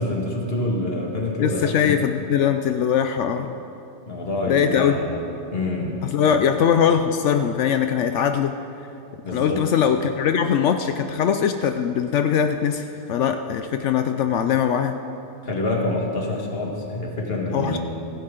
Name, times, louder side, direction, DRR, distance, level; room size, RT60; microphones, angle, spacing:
voice 1, 0.0-2.1 4.1-5.2 5.5-6.0 6.4-6.5 9.2-9.7 15.4-17.8, left 2 dB, 50° left, -1 dB, 2.0 m, -26 dB
voice 2, 1.4-3.6 4.4-5.0 6.1-8.5 9.3-15.0 17.5-17.8, left 8 dB, 75° left, 7 dB, 0.9 m, -21 dB
16.5 x 16.0 x 3.8 m, 2.8 s
omnidirectional pair, 1.3 m